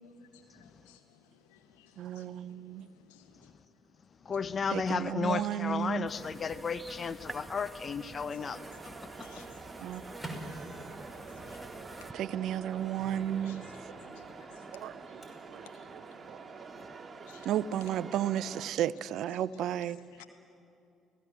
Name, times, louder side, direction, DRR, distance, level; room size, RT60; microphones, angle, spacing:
voice 1, 0.0-4.4 7.2-7.4 8.1-9.8 10.5-17.5 17.8-18.0 18.5-18.7 19.3-20.2, left 9 dB, 75° left, 6 dB, 2.0 m, -61 dB
voice 2, 2.0-2.9 4.7-6.1 9.8-10.0 12.1-13.6 14.8-14.9 15.5-15.7 16.3-16.4 17.4-20.0, right 11 dB, 60° right, 19 dB, 0.6 m, -33 dB
voice 3, 4.3-8.6, left 5 dB, 40° left, 14 dB, 0.9 m, -33 dB
sound 1, 6.1-12.1, right 1 dB, 10° right, 1.5 m, -48 dB
sound 2, 8.4-18.7, right 5 dB, 30° right, 2.4 m, -47 dB
Microwave oven, 9.8-15.8, right 1 dB, 15° left, 5.7 m, -49 dB
29.5 x 17.5 x 7.7 m, 2.6 s
figure-of-eight pair, 50°, 0 cm